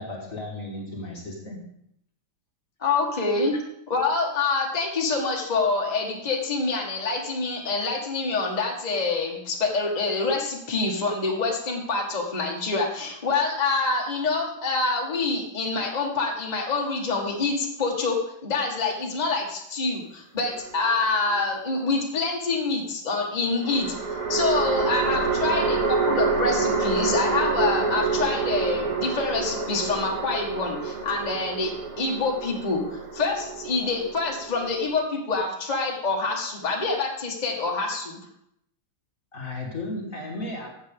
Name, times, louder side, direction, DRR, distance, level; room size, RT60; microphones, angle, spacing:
voice 1, 0.0-1.7 39.3-40.7, left 2 dB, 40° left, -1 dB, 1.9 m, -34 dB
voice 2, 2.8-3.6 3.9-23.9 24.3-31.7 32.0-38.2, left 3 dB, 20° left, -2 dB, 1.7 m, -26 dB
sound 1, 20.5-21.4 23.6-35.0, right 4 dB, 85° right, 2.6 m, -27 dB
14.5 x 7.7 x 3.7 m, 0.73 s
omnidirectional pair, 2.3 m